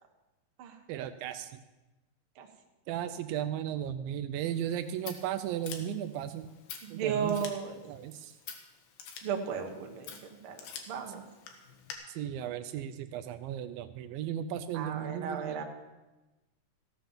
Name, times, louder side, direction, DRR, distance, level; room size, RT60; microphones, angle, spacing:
voice 1, 0.9-1.6 2.9-6.5 6.9-7.4 7.9-8.3 12.1-15.6, right 10 dB, 80° right, 10 dB, 2.2 m, -35 dB
Scissors, 4.5-11.9, left 7 dB, 80° left, 3.2 m, -48 dB
voice 2, 6.8-7.8 9.2-10.6 10.9-11.3 14.7-15.6, right 7 dB, 60° right, 3 dB, 1.5 m, -35 dB
15.0 x 7.6 x 7.1 m, 1.1 s
omnidirectional pair, 4.2 m